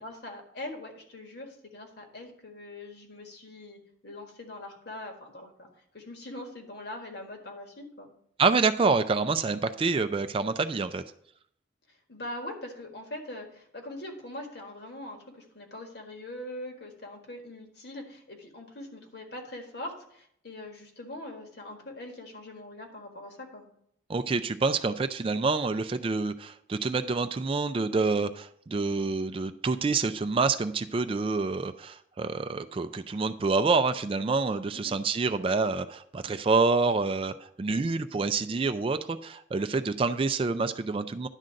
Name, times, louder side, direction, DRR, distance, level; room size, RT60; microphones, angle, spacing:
voice 1, 0.0-5.7 5.9-8.1 12.1-23.7 34.7-34.9, left 1 dB, 55° left, 3 dB, 1.7 m, -42 dB
voice 2, 8.4-11.0 24.1-41.3, right 4 dB, 30° right, 10 dB, 0.3 m, -27 dB
10.5 x 3.9 x 7.5 m, 0.70 s
head